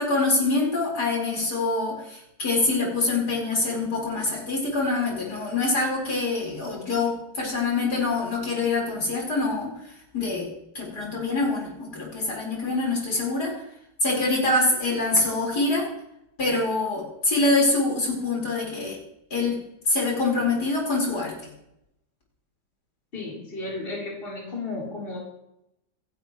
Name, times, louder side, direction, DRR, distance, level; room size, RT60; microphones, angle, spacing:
voice 1, 0.0-9.7 10.1-10.5 10.7-13.5 14.0-15.9 16.4-19.0 19.3-21.3, left 3 dB, 50° left, -3 dB, 5.0 m, -25 dB
voice 2, 23.1-25.2, left 2 dB, 25° left, -5 dB, 4.0 m, -33 dB
27.5 x 10.5 x 3.1 m, 0.83 s
omnidirectional pair, 2.1 m